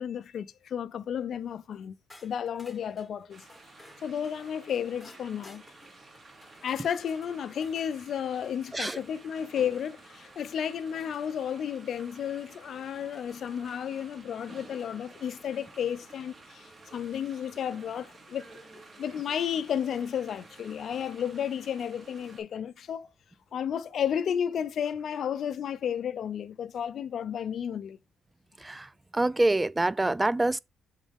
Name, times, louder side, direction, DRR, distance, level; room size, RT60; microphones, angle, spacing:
voice 1, 0.0-1.9 2.2-3.4 4.0-5.6 6.6-18.5 19.0-23.1 23.5-28.0, left 8 dB, 60° left, 0.5 m, -32 dB
sound 1, 2.1-7.9 9.9-10.0 11.0-11.4, left 2 dB, 10° left, 1.4 m, -56 dB
sound 2, 3.3-22.4, right 2 dB, 35° right, 3.0 m, -52 dB
voice 2, 28.6-30.6, right 2 dB, 15° right, 0.4 m, -26 dB
7.2 x 4.0 x 3.6 m
cardioid pair, 90°, 0 cm